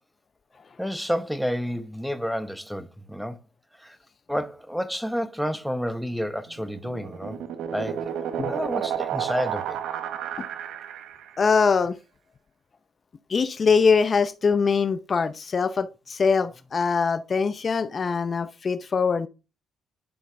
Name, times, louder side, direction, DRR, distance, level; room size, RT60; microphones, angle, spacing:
voice 1, 0.8-3.4 3.8-4.0 4.3-7.4 7.7-9.8, equal, ahead, 0.9 m, -30 dB
sound 1, 6.6-11.4, right 9 dB, 80° right, 0.8 m, -31 dB
voice 2, 11.4-12.0 13.3-19.3, left 5 dB, 40° left, 0.6 m, -23 dB
10.0 x 5.4 x 3.4 m
cardioid pair, 90°, 0 cm